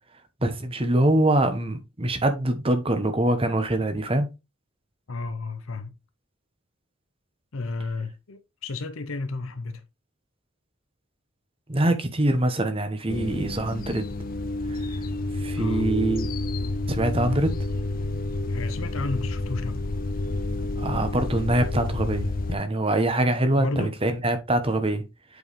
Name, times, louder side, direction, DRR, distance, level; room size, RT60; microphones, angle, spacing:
voice 1, 0.4-4.3 11.7-14.1 14.7-14.8 15.4-16.3 16.9-17.5 20.8-25.0, right 1 dB, 25° right, 1.0 m, -24 dB
voice 2, 5.1-5.9 7.5-9.8 15.5-15.9 18.5-19.7 23.6-24.0, left 3 dB, 75° left, 0.7 m, -32 dB
sound 1, 13.1-22.5, left 2 dB, 45° left, 0.6 m, -29 dB
8.2 x 4.7 x 3.2 m
head